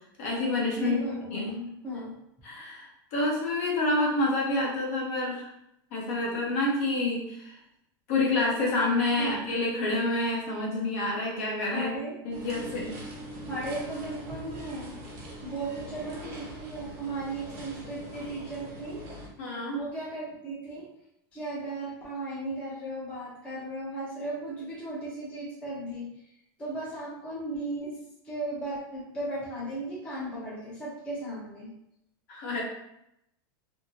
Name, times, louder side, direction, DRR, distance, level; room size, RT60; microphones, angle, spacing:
voice 1, 0.2-1.0 1.3-1.5 2.4-5.5 5.9-7.6 8.1-11.9 12.2-13.0 19.4-19.8 32.3-32.6, left 2 dB, 45° left, -3 dB, 0.8 m, -28 dB
voice 2, 0.8-2.1 9.2-9.3 11.7-12.1 13.5-15.0 15.4-19.0 19.7-20.8 21.3-26.3 26.6-28.0 28.2-31.7, right 2 dB, 10° left, -8 dB, 0.7 m, -36 dB
sound 1, 12.3-19.3, right 1 dB, 40° right, 0.7 m, -42 dB
2.8 x 2.7 x 2.7 m, 0.80 s
supercardioid pair, 180°, 12 cm